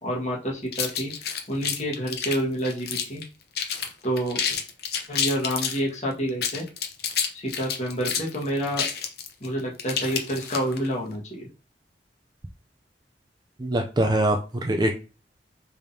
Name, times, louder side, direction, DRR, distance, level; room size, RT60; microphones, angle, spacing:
voice 1, 0.0-1.1 1.5-3.2 4.0-4.4 5.1-6.6 7.3-8.9 9.4-11.5, equal, 40° left, -4 dB, 1.6 m, -28 dB
sound 1, 0.7-3.2 3.5-3.9 4.2-5.8 6.3-10.9, left 7 dB, 60° left, 0.8 m, -29 dB
voice 2, 13.6-14.9, right 1 dB, 25° right, 3 dB, 0.5 m, -23 dB
4.9 x 3.6 x 2.7 m, 0.32 s
head